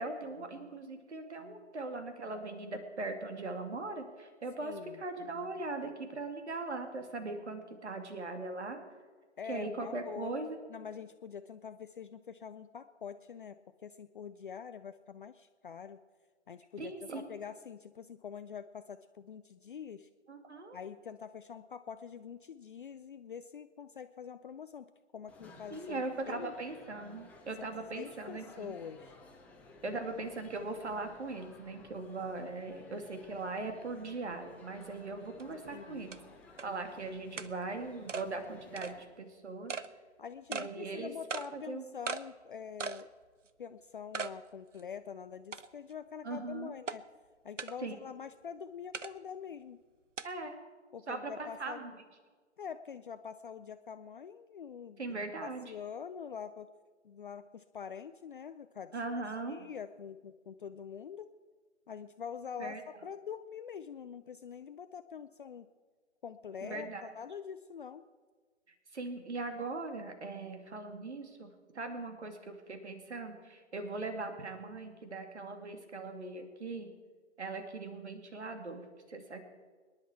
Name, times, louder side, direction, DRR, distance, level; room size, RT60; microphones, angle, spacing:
voice 1, 0.0-8.8 9.5-10.6 16.8-17.3 20.3-20.8 25.7-28.7 29.8-36.2 36.6-39.7 40.5-41.1 41.5-41.8 46.2-46.7 47.8-48.0 50.2-50.6 51.1-51.9 55.0-55.7 58.9-59.7 62.6-62.8 66.6-67.1 68.9-71.5 71.7-76.9 77.4-79.5, right 3 dB, 65° right, 6 dB, 2.5 m, -40 dB
voice 2, 4.6-5.0 9.4-10.3 10.7-13.6 13.8-16.0 16.5-20.1 20.7-26.5 28.0-29.1 29.8-30.0 35.7-36.1 40.2-43.1 43.6-47.0 47.4-49.8 50.9-51.9 52.6-55.2 55.6-56.7 57.0-59.0 59.5-61.3 61.9-65.7 66.2-68.0, left 7 dB, 45° left, 10 dB, 0.5 m, -45 dB
sound 1, 25.3-39.0, left 3 dB, 5° left, 1.2 m, -56 dB
sound 2, 35.4-35.5 36.1-36.2 36.6-36.7 37.4-37.5 38.1-38.3 38.8-38.9 39.7-39.9 40.5-40.7 41.3-41.5 42.1-42.2 42.8-43.0 43.5-43.6 44.1-44.3 44.8-44.9 45.5-45.9 46.9-47.0 47.6-47.7 48.9-49.1 50.2-50.3, right 5 dB, 80° right, 0.8 m, -38 dB
25.0 x 10.5 x 4.5 m, 1.5 s
figure-of-eight pair, 130°, 37 cm